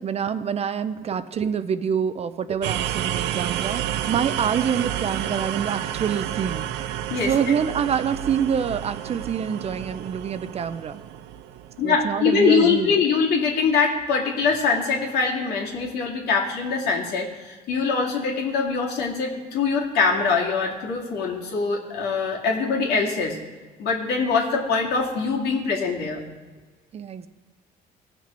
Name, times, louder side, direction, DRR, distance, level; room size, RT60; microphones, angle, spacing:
voice 1, 0.0-6.7 7.3-11.0 11.8-12.9 26.9-27.3, right 7 dB, 40° right, 12 dB, 0.5 m, -26 dB
sound 1, 2.6-12.4, right 11 dB, 85° right, 0.5 m, -30 dB
voice 2, 11.8-23.4 23.8-26.2, left 5 dB, 75° left, -1 dB, 2.3 m, -23 dB
17.5 x 6.0 x 4.4 m, 1.3 s
cardioid pair, 110°, 17 cm